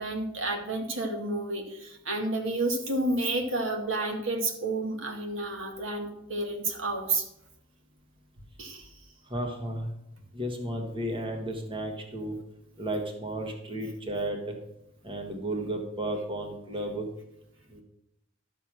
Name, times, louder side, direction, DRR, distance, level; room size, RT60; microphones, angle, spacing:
voice 1, 0.0-7.3 8.6-8.9, right 2 dB, 80° right, 3 dB, 2.1 m, -30 dB
voice 2, 9.3-9.9 10.3-12.4 12.8-14.6 15.0-17.1 17.7-17.8, right 1 dB, 25° right, 3 dB, 1.5 m, -33 dB
12.0 x 6.8 x 6.2 m, 0.84 s
head